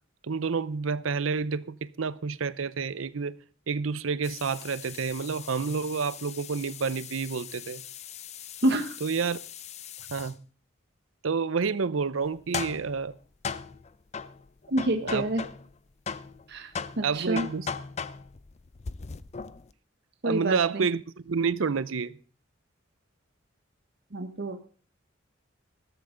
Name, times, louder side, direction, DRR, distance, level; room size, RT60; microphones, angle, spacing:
voice 1, 0.3-3.3 3.7-7.8 9.0-9.4 10.1-10.4 11.2-13.1 15.0-15.3 17.0-17.7 20.2-21.0 21.3-22.2, right 5 dB, 80° right, 0.6 m, -29 dB
sound 1, 4.2-10.3 12.2-15.8 16.1-19.7, left 6 dB, 35° left, 0.5 m, -39 dB
voice 2, 8.6-8.9 14.7-15.4 16.5-16.7 17.0-17.5 20.2-20.9 24.1-24.6, right 1 dB, 55° right, 1.2 m, -27 dB
15.0 x 13.5 x 3.8 m
head